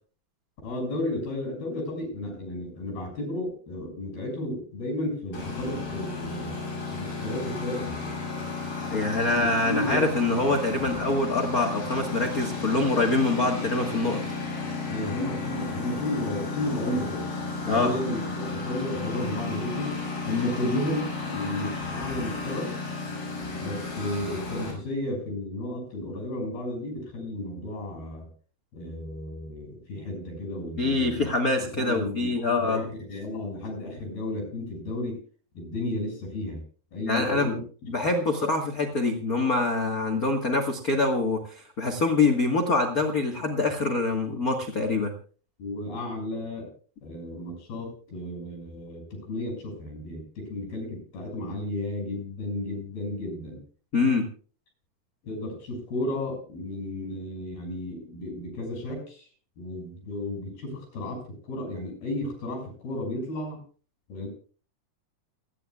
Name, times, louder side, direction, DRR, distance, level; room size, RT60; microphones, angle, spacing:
voice 1, 0.6-6.5 6.9-8.1 9.3-10.0 14.9-17.3 17.7-20.0 20.3-22.7 23.6-28.3 28.7-31.3 31.7-35.2 35.6-36.6 36.9-37.6 45.6-46.7 47.0-53.6 55.2-59.3 59.6-63.6 64.1-64.3, left 1 dB, 85° left, 2 dB, 8.9 m, -33 dB
Engine, 5.3-24.7, left 3 dB, 65° left, 8.5 m, -33 dB
voice 2, 8.9-14.2 17.6-17.9 30.8-32.8 37.1-37.5 37.9-45.1 53.9-54.3, left 3 dB, 50° left, 3 dB, 1.0 m, -25 dB
29.0 x 10.5 x 2.4 m, 0.39 s
omnidirectional pair, 4.3 m